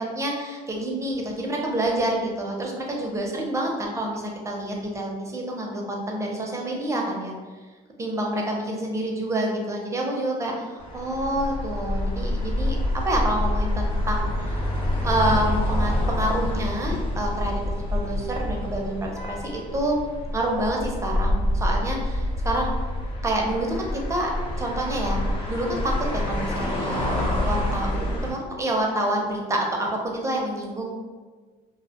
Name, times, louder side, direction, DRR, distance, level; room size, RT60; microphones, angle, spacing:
voice 1, 0.0-7.3 8.0-12.8 13.1-14.8 15.0-19.4 19.7-19.9 20.3-22.7 23.2-24.3 24.6-25.2 25.5-30.9, right 1 dB, 15° right, 0 dB, 0.5 m, -28 dB
sound 1, 10.8-28.3, left 1 dB, 30° left, 0.9 m, -27 dB
2.4 x 2.0 x 2.8 m, 1.4 s
cardioid pair, 110°, 17 cm